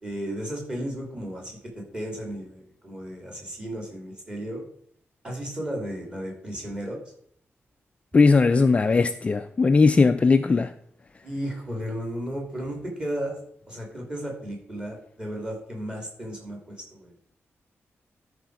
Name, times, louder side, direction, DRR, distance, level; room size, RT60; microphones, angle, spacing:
voice 1, 0.0-4.6 5.2-7.0 11.2-13.3 13.7-17.1, equal, 20° right, 0 dB, 2.9 m, -34 dB
voice 2, 8.1-10.7, left 4 dB, 25° left, 9 dB, 0.3 m, -19 dB
13.0 x 5.1 x 4.7 m, 0.65 s
wide cardioid pair, 180°, 5 cm